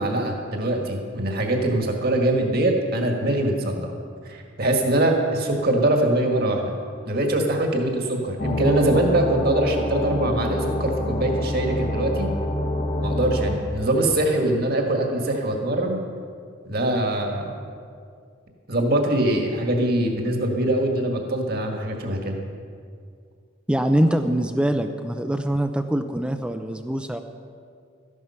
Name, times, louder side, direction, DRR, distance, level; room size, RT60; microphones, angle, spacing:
voice 1, 0.0-4.0 4.3-6.7 7.1-12.3 13.0-16.0 16.7-17.6 18.7-22.4, right 1 dB, 50° right, 2 dB, 1.8 m, -23 dB
sound 1, 8.4-13.6, left 1 dB, 35° left, 1.3 m, -26 dB
voice 2, 23.7-27.2, right 1 dB, 5° right, 6 dB, 0.4 m, -23 dB
14.0 x 11.0 x 5.7 m, 2.2 s
head